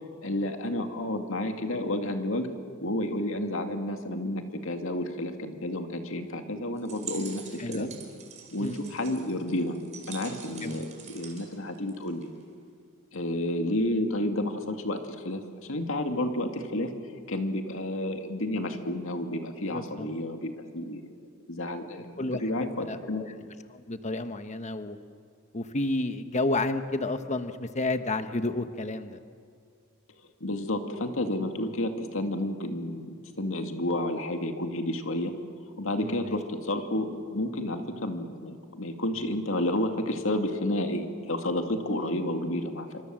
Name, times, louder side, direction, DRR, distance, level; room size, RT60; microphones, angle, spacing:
voice 1, 0.2-2.5 2.8-7.9 8.5-9.8 10.1-12.3 13.1-15.4 15.7-16.9 17.3-21.2 21.5-23.2 30.4-35.3 35.8-43.0, left 1 dB, 70° left, 5 dB, 2.3 m, -31 dB
sound 1, 6.8-12.4, right 7 dB, 35° right, 4.8 m, -45 dB
voice 2, 7.6-7.9 8.6-8.8 10.6-10.8 19.7-20.1 22.2-23.3 23.7-25.0 25.5-29.2 31.6-31.7 36.0-36.4, left 2 dB, 35° left, 9 dB, 1.2 m, -31 dB
28.0 x 25.5 x 7.7 m, 2.3 s
head